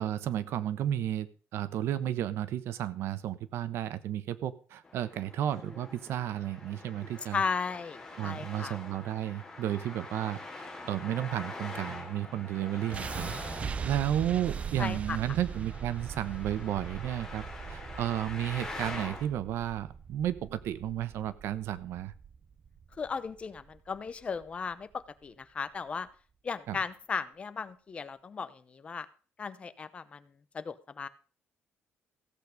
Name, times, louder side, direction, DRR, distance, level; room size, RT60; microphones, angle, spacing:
voice 1, 0.0-7.4 8.2-13.3 13.8-22.1 26.7-26.8, right 11 dB, 75° right, 15 dB, 1.0 m, -33 dB
Traffic noise roadway noise, 4.8-19.2, left 2 dB, 10° left, 3.6 m, -45 dB
voice 2, 7.3-8.8 14.8-15.2 23.0-26.1 26.4-29.1 29.4-30.2 30.5-31.1, left 5 dB, 30° left, 14 dB, 0.8 m, -36 dB
sound 1, 12.9-24.9, right 6 dB, 30° right, 0.6 m, -41 dB
15.5 x 8.3 x 5.2 m, 0.39 s
cardioid pair, 160°, 4 cm